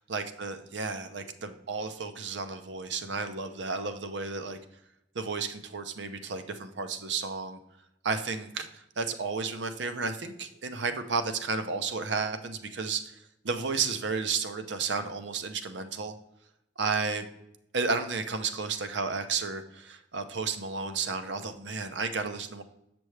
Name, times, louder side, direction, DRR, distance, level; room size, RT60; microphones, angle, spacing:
voice 1, 0.1-4.6 5.1-7.6 8.0-16.1 16.8-17.3 17.7-22.6, right 4 dB, 80° right, 8 dB, 0.7 m, -32 dB
8.0 x 6.1 x 3.3 m, 0.80 s
head